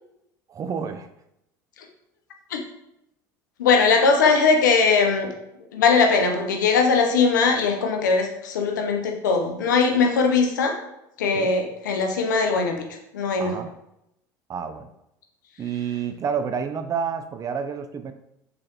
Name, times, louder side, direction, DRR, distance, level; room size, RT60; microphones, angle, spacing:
voice 1, 0.5-1.1 11.3-11.5 13.4-13.7 14.5-14.9 15.6-18.1, right 7 dB, 35° right, 9 dB, 0.4 m, -29 dB
voice 2, 3.6-5.3 5.7-10.8 11.2-12.8 13.1-13.6, left 4 dB, 90° left, 4 dB, 0.6 m, -20 dB
3.8 x 3.1 x 2.9 m, 0.82 s
hypercardioid pair, 80°, 10 cm